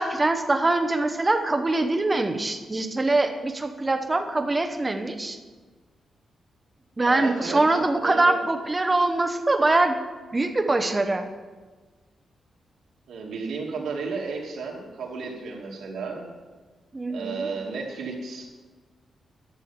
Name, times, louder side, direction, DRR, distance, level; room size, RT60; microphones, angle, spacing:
voice 1, 0.0-5.4 7.0-10.0 10.3-11.3 16.9-17.5, right 2 dB, 20° right, 7 dB, 0.9 m, -23 dB
voice 2, 7.1-8.4 13.1-16.3 17.1-18.5, right 4 dB, 85° right, -1 dB, 2.4 m, -33 dB
11.5 x 6.9 x 7.2 m, 1.4 s
wide cardioid pair, 140°, 0 cm